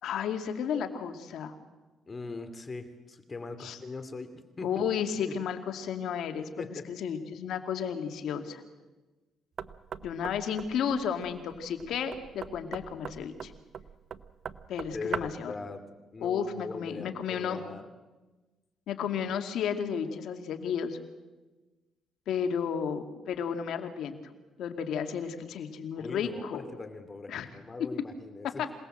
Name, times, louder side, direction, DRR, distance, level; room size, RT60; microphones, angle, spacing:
voice 1, 0.0-1.5 3.6-3.8 4.6-8.6 10.0-13.5 14.7-15.5 16.2-17.6 18.9-21.0 22.3-24.2 24.6-26.6 27.3-27.5 27.8-28.1 28.4-28.5, left 7 dB, 75° left, 6 dB, 2.4 m, -33 dB
voice 2, 2.1-4.3 4.6-4.7 5.3-5.4 6.6-6.9 14.9-15.8 16.1-17.9 26.0-28.7, left 3 dB, 30° left, 10 dB, 2.6 m, -40 dB
Knock, 9.6-15.5, right 7 dB, 55° right, 0.9 m, -41 dB
27.0 x 18.5 x 7.9 m, 1.2 s
cardioid pair, 90°, 0 cm